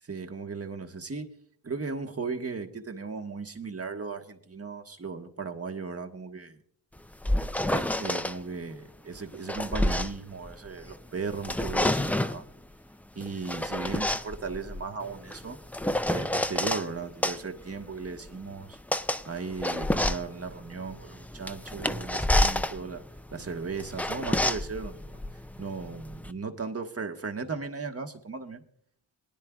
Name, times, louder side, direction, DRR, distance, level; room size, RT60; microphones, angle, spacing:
voice 1, 0.0-1.3 1.6-6.6 7.7-12.5 13.1-15.6 16.1-18.8 19.3-23.0 23.3-25.2 25.6-28.6, right 4 dB, 30° right, 5 dB, 1.3 m, -36 dB
sound 1, 7.0-8.4 9.2-11.0 11.3-12.4 13.2-16.9 17.2-26.3, left 1 dB, 5° left, 0.4 m, -29 dB
21.0 x 10.0 x 2.3 m, 0.63 s
cardioid pair, 70°, 46 cm